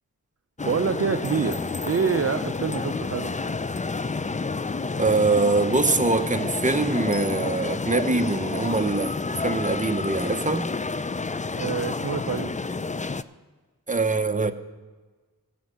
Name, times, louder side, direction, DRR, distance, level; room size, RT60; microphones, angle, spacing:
sound 1, 0.6-13.2, left 3 dB, 20° left, 0.4 m, -29 dB
voice 1, 0.6-3.3 11.6-12.5, right 6 dB, 40° right, 0.6 m, -26 dB
voice 2, 5.0-10.7 13.9-14.5, right 3 dB, 20° right, 0.9 m, -23 dB
15.0 x 6.2 x 7.9 m
cardioid pair, 40°, 37 cm